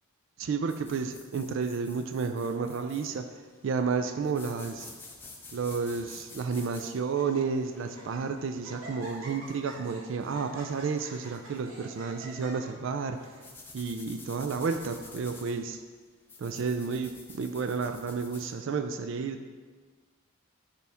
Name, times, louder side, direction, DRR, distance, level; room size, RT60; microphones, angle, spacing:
voice 1, 0.4-3.3 3.6-4.9 5.5-13.2 13.7-15.8 16.4-19.5, right 5 dB, 60° right, 8 dB, 0.3 m, -31 dB
sound 1, 0.7-18.5, left 3 dB, 10° left, 0.6 m, -51 dB
Laughter, 2.4-3.2 3.9-4.3 4.5-4.6 5.4-6.0 6.6-6.7 7.0-7.4 7.8-8.2 8.6-13.4, right 1 dB, 75° right, 2.0 m, -47 dB
6.8 x 5.6 x 3.4 m, 1.4 s
head